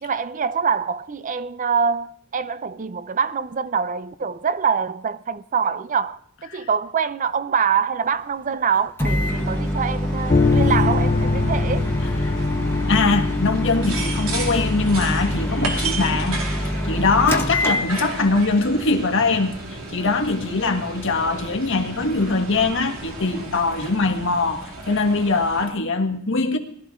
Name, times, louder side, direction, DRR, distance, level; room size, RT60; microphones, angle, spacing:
voice 1, 0.0-11.9, right 6 dB, 40° right, 0.5 m, -24 dB
Microwave oven, 9.0-18.4, left 1 dB, 10° left, 1.3 m, -25 dB
sound 1, 9.0-25.7, right 2 dB, 80° right, 2.9 m, -34 dB
sound 2, 10.3-15.9, left 3 dB, 35° left, 0.5 m, -24 dB
voice 2, 12.9-16.4 16.8-19.5 19.9-26.6, left 3 dB, 65° left, 1.5 m, -22 dB
20.5 x 13.0 x 3.7 m
head